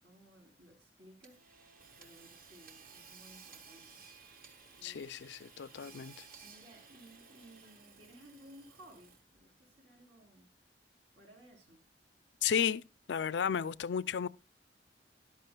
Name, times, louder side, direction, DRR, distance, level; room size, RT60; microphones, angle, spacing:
voice 1, 0.0-1.4 1.9-4.0 4.8-5.2 5.8-6.0 6.4-10.5 11.1-11.8, right 1 dB, 85° right, 3.6 m, -58 dB
Hammer / Sawing, 1.2-9.4, right 5 dB, 55° right, 1.4 m, -57 dB
voice 2, 4.8-6.1 12.4-12.8 13.1-14.3, left 7 dB, 80° left, 0.4 m, -33 dB
13.0 x 11.0 x 2.3 m
head